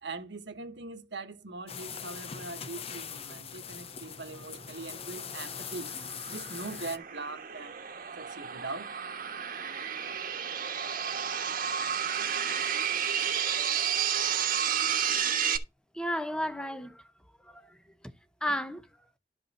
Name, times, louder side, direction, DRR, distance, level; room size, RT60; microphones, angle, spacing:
voice 1, 0.0-5.9 6.3-7.8 8.2-8.9, right 3 dB, 70° right, 1.4 m, -41 dB
sound 1, 1.7-7.0, left 7 dB, 35° left, 0.5 m, -41 dB
sound 2, 4.7-15.6, right 8 dB, 55° right, 1.3 m, -32 dB
voice 2, 15.9-17.1 17.4-18.1 18.4-18.9, equal, 5° left, 0.9 m, -34 dB
12.0 x 5.5 x 4.2 m
head